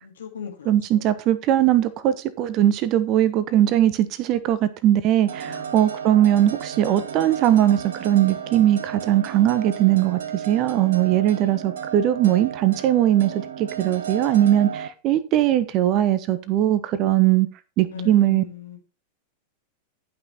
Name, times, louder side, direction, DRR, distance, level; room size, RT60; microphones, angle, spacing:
voice 1, 0.0-1.1 5.5-5.8 17.9-18.8, left 6 dB, 65° left, 2.5 m, -38 dB
voice 2, 0.7-17.5 17.8-18.4, right 12 dB, 40° right, 1.0 m, -20 dB
sound 1, 5.3-14.9, right 7 dB, 65° right, 1.0 m, -34 dB
11.0 x 5.9 x 4.3 m
figure-of-eight pair, 90°, 0 cm